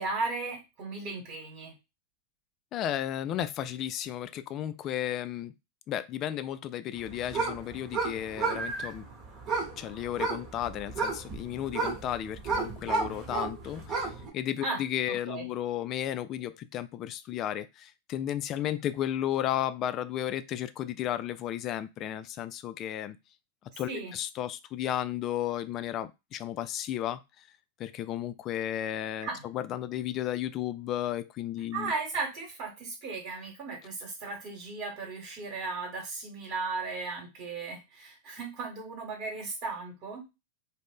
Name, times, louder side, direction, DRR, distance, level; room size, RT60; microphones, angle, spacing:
voice 1, 0.0-1.7 14.6-14.8 15.3-15.4 23.7-24.1 29.2-29.4 31.7-40.3, right 3 dB, 50° right, 1.2 m, -36 dB
voice 2, 2.7-5.5 5.9-9.0 9.8-23.2 23.8-27.5 27.8-31.9, left 11 dB, 40° left, 0.3 m, -33 dB
sound 1, 7.0-14.3, right 4 dB, 35° right, 1.1 m, -33 dB
2.5 x 2.0 x 3.5 m
hypercardioid pair, 95°, 0 cm